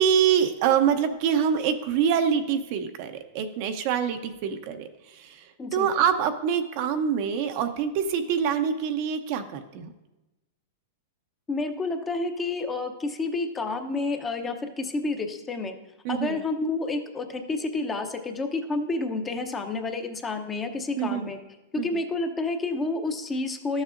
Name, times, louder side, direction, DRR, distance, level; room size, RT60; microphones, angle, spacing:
voice 1, 0.0-4.9 5.2-5.4 5.7-9.9 16.0-16.4 21.0-21.3 21.8-21.9, right 8 dB, 50° right, 8 dB, 0.7 m, -25 dB
voice 2, 11.5-15.7 16.1-21.4 21.7-23.8, left 3 dB, 20° left, 5 dB, 0.8 m, -29 dB
12.5 x 7.2 x 2.6 m, 1.0 s
hypercardioid pair, 130°, 0 cm